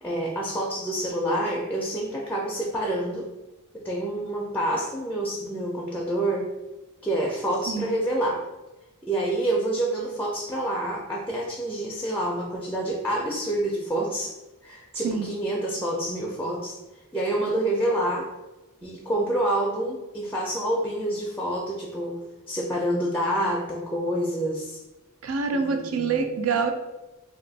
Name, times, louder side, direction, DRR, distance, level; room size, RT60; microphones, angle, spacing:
voice 1, 0.0-3.3 3.7-6.5 7.0-8.4 9.0-14.3 14.6-16.8 17.1-18.3 18.8-22.2 22.5-24.8 25.5-26.2, right 1 dB, 10° left, -2 dB, 0.4 m, -27 dB
voice 2, 25.2-26.7, right 5 dB, 70° right, 6 dB, 0.4 m, -26 dB
2.6 x 2.4 x 3.9 m, 1.0 s
head